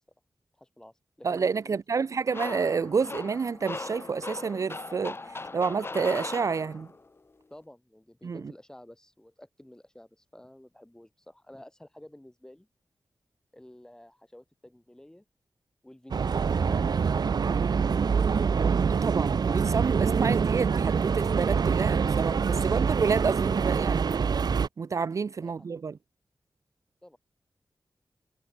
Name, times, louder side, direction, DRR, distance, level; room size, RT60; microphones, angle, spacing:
voice 1, 0.6-1.8 7.5-12.7 13.5-15.2 15.8-17.5 25.4-25.6 27.0-27.2, left 1 dB, 10° left, 6.8 m, -51 dB
voice 2, 1.2-6.9 8.2-8.4 19.0-24.3 24.8-25.9, right 5 dB, 50° right, 0.4 m, -29 dB
sound 1, 2.3-7.1, left 3 dB, 35° left, 3.5 m, -38 dB
sound 2, 16.1-24.7, right 6 dB, 75° right, 1.2 m, -25 dB
wide cardioid pair, 125°, 7 cm